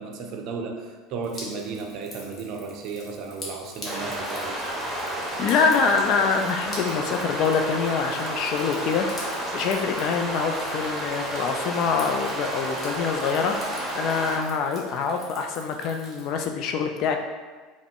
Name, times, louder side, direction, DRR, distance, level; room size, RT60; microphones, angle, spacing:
voice 1, 0.0-4.7, right 4 dB, 55° right, 3 dB, 0.5 m, -34 dB
Drip, 1.2-16.5, left 1 dB, 35° left, 1.0 m, -45 dB
sound 1, 3.8-14.4, right 1 dB, 5° right, 1.0 m, -31 dB
voice 2, 5.4-17.2, left 5 dB, 55° left, 5 dB, 0.3 m, -25 dB
3.4 x 2.1 x 3.7 m, 1.4 s
hypercardioid pair, 80°, 0 cm